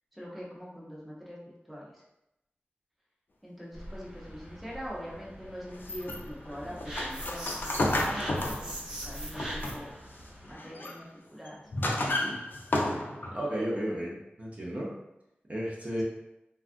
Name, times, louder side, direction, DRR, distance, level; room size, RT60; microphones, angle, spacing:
voice 1, 0.1-2.0 3.4-8.7 9.0-9.9 10.5-11.0 11.3-11.6, equal, ahead, -6 dB, 0.8 m, -43 dB
sound 1, 3.7-10.5, equal, 55° right, 1.5 m, -47 dB
sound 2, 5.7-10.0 10.4-11.0 11.4-13.4, left 1 dB, 60° left, 0.4 m, -32 dB
sound 3, 6.8-9.9, right 1 dB, 15° right, 1.1 m, -39 dB
voice 2, 13.3-14.9 15.5-16.0, equal, 35° right, -5 dB, 0.7 m, -33 dB
3.3 x 2.4 x 2.5 m, 0.88 s
wide cardioid pair, 85°, 4 cm